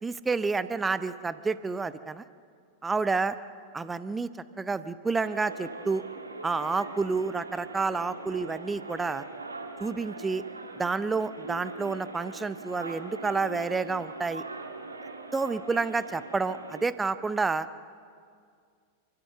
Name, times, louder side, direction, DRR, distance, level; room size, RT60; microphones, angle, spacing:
voice 1, 0.0-2.2 2.8-3.4 3.7-4.3 4.6-6.0 6.4-9.2 9.8-10.4 10.8-14.4 15.3-17.7, right 4 dB, 10° right, 14 dB, 0.6 m, -29 dB
sound 1, 5.2-16.9, right 3 dB, 80° right, 1.6 m, -41 dB
29.0 x 13.5 x 7.8 m, 2.2 s
figure-of-eight pair, 90°, 0 cm